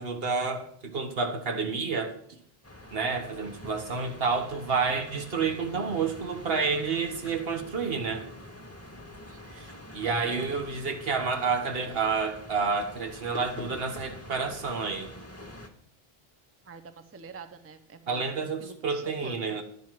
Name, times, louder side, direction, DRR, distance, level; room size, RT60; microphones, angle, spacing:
voice 1, 0.0-2.4 2.9-8.3 9.5-15.1 18.1-19.6, right 5 dB, 70° right, 1.3 m, -29 dB
sound 1, 2.6-15.7, left 1 dB, 15° left, 0.8 m, -46 dB
voice 2, 16.6-19.6, right 5 dB, 20° right, 0.5 m, -47 dB
10.5 x 4.6 x 7.4 m
omnidirectional pair, 1.0 m